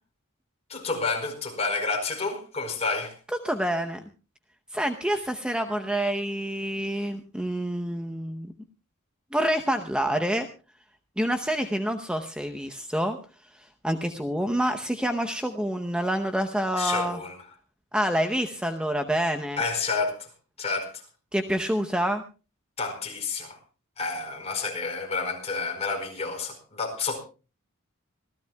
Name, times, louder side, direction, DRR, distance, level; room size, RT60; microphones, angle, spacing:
voice 1, 0.7-3.1 16.8-17.3 19.6-20.3 20.6-20.9 22.8-23.6 24.0-27.2, left 4 dB, 30° left, 3 dB, 4.7 m, -29 dB
voice 2, 3.4-4.0 4.7-8.5 9.3-10.5 11.2-13.2 13.5-17.2 17.9-19.6 21.3-22.2, equal, 5° right, 5 dB, 0.8 m, -27 dB
26.0 x 15.5 x 2.3 m, 0.34 s
head